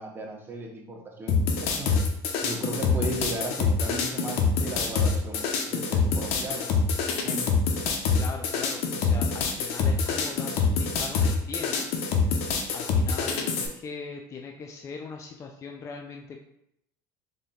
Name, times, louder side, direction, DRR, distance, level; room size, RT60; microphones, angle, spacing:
voice 1, 0.0-1.9 2.4-6.8 7.1-7.4, right 1 dB, 20° right, 0 dB, 0.8 m, -36 dB
sound 1, 1.3-13.7, left 4 dB, 65° left, 0.6 m, -25 dB
voice 2, 8.2-11.9 12.2-16.4, left 5 dB, 25° left, 2 dB, 0.3 m, -40 dB
3.8 x 3.5 x 2.3 m, 0.77 s
supercardioid pair, 100°, 11 cm